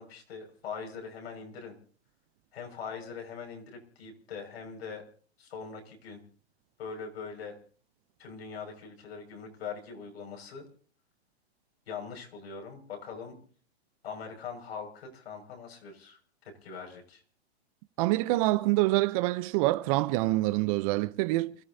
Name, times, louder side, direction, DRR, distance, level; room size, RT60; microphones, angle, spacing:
voice 1, 0.0-1.7 2.5-5.1 5.4-6.2 6.8-7.6 8.2-10.7 11.9-13.4 14.0-17.2, left 5 dB, 70° left, 5.9 m, -42 dB
voice 2, 18.0-21.6, right 19 dB, 35° right, 0.6 m, -26 dB
29.5 x 14.0 x 2.7 m
hypercardioid pair, 130°, 32 cm